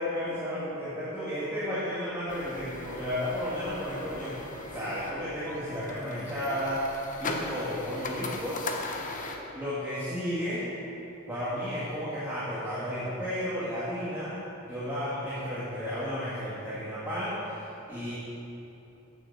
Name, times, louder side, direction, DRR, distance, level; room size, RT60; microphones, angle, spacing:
voice 1, 0.0-4.4 4.7-8.6 9.5-10.6 11.3-14.4 14.6-18.1, equal, 10° right, -12 dB, 1.8 m, -33 dB
sound 1, 2.3-9.4, left 2 dB, 40° left, 0.8 m, -38 dB
8.7 x 6.8 x 6.5 m, 3.0 s
head